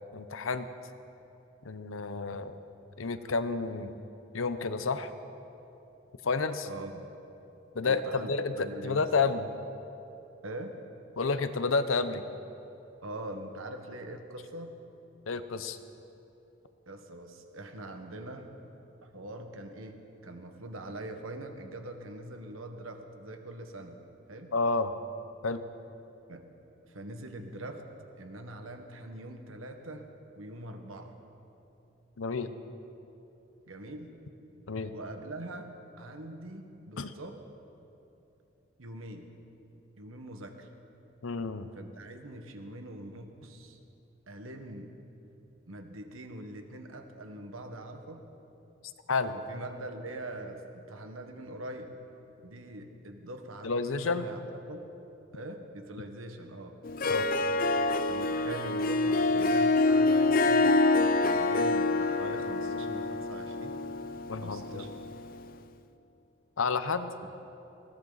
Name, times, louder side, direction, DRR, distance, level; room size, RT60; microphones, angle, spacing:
voice 1, 0.1-0.7 1.6-2.6 3.0-4.0 4.3-5.1 6.2-6.7 7.7-9.5 11.2-12.2 15.3-15.8 24.5-24.9 25.4-25.6 32.2-32.5 34.7-34.9 37.0-37.1 41.2-41.7 49.1-49.3 53.6-54.3 57.1-57.3 64.3-64.8 66.6-67.1, left 4 dB, 85° left, 11 dB, 0.8 m, -30 dB
voice 2, 6.6-7.1 7.8-9.1 10.4-10.8 13.0-14.8 16.9-18.5 19.0-24.0 24.3-24.5 26.3-26.5 26.9-27.8 28.2-31.1 33.7-34.1 34.9-35.7 36.0-37.4 38.8-39.3 40.0-40.7 41.7-43.8 44.3-44.9 45.7-48.2 49.3-51.9 52.4-54.4 54.7-54.9 55.3-56.8 58.1-60.8 61.2-63.8 64.4-64.9, right 1 dB, 90° right, 5 dB, 1.5 m, -43 dB
Harp, 56.8-65.4, left 2 dB, 45° left, 0.5 m, -26 dB
20.5 x 17.5 x 4.1 m, 2.9 s
head